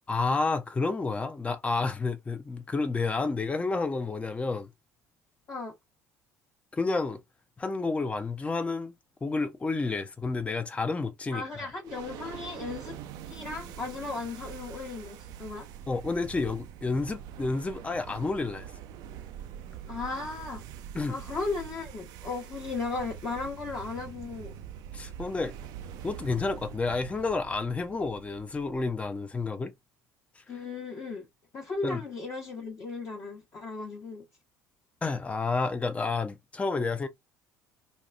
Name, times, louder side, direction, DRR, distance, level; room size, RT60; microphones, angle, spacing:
voice 1, 0.1-4.7 6.7-7.2 7.6-8.9 9.2-11.4 15.9-18.7 20.9-21.2 24.9-25.5 26.0-29.7 31.8-32.0 35.0-37.1, left 3 dB, 15° left, 0.6 m, -30 dB
voice 2, 11.3-13.0 13.3-15.7 19.9-20.6 21.1-24.5 30.5-31.3 31.5-34.2, left 3 dB, 35° left, 1.0 m, -36 dB
sound 1, 11.8-29.2, right 9 dB, 55° right, 0.4 m, -44 dB
4.1 x 2.3 x 2.2 m
figure-of-eight pair, 60°, 8 cm